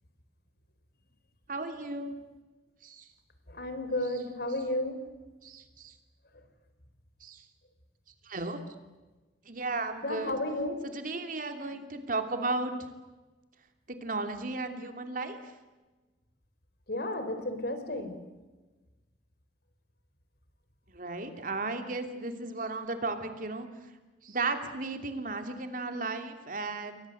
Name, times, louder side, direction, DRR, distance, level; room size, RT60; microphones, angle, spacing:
voice 1, 1.5-2.2 2.8-3.1 5.4-5.9 7.2-7.4 8.2-8.6 9.4-10.3 10.8-12.7 14.0-15.4 20.9-23.7 24.2-27.0, right 3 dB, 50° right, 7 dB, 2.9 m, -34 dB
voice 2, 3.5-5.0 10.0-10.8 16.9-18.2, left 1 dB, 65° left, 9 dB, 4.1 m, -32 dB
29.0 x 23.0 x 7.9 m, 1.2 s
head